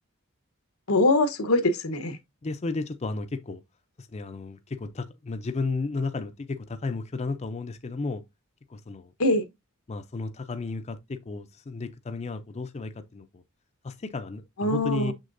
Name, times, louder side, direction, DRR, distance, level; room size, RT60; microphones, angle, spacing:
voice 1, 0.9-2.2 9.2-9.4 14.6-15.1, left 2 dB, 85° left, 1.0 m, -23 dB
voice 2, 2.4-3.6 4.0-8.2 8.7-9.1 9.9-13.4 13.8-15.1, left 3 dB, 30° left, 0.5 m, -33 dB
6.7 x 6.4 x 2.6 m
head